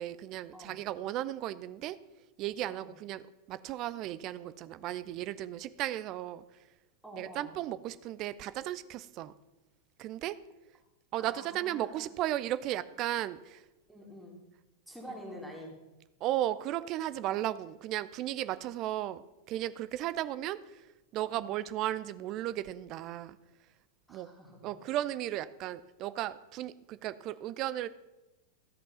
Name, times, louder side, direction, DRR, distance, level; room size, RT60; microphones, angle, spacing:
voice 1, 0.0-2.0 2.4-6.4 7.1-9.3 10.0-10.4 11.1-13.6 16.2-20.8 21.1-23.4 24.1-24.3 24.6-27.9, right 13 dB, 40° right, 16 dB, 0.4 m, -35 dB
voice 2, 7.0-7.6 11.2-12.0 13.9-14.4 14.9-15.8 21.3-21.5 24.1-24.7, equal, ahead, -2 dB, 2.5 m, -47 dB
13.5 x 5.4 x 5.5 m, 1.0 s
figure-of-eight pair, 90°, 0 cm